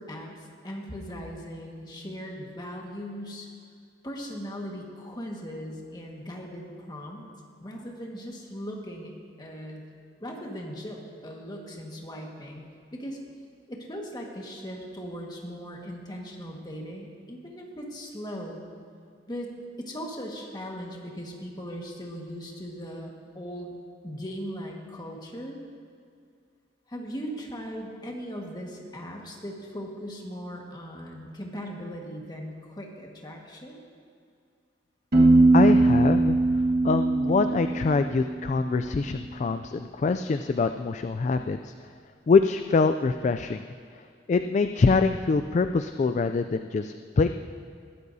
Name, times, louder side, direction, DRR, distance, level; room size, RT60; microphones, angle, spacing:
voice 1, 0.0-3.5 4.0-7.3 7.6-9.8 10.2-12.6 12.9-13.2 13.7-18.6 19.3-19.5 19.8-23.7 24.0-25.6 26.9-33.8, equal, 25° left, 0 dB, 1.6 m, -38 dB
Piano, 35.1-38.8, right 2 dB, 60° right, 1.7 m, -21 dB
voice 2, 35.5-41.7 42.3-43.6 44.3-47.3, left 4 dB, 40° left, 8 dB, 0.3 m, -24 dB
20.5 x 13.5 x 2.7 m, 2.3 s
head